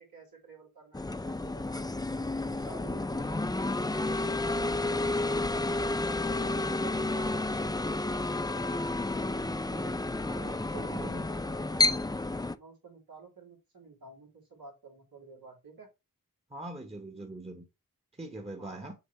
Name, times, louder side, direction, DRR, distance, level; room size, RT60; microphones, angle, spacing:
voice 1, 0.0-2.1 2.5-3.5 3.9-9.2 9.7-10.0 10.3-12.1 12.5-15.9 18.6-18.8, right 4 dB, 90° right, 2.7 m, -51 dB
sound 1, 0.9-12.5, left 2 dB, 10° left, 0.4 m, -31 dB
voice 2, 3.2-3.6 10.2-11.2 16.5-17.6 18.2-18.9, right 1 dB, 15° right, 1.1 m, -42 dB
6.9 x 3.1 x 4.3 m
wide cardioid pair, 50°, 35 cm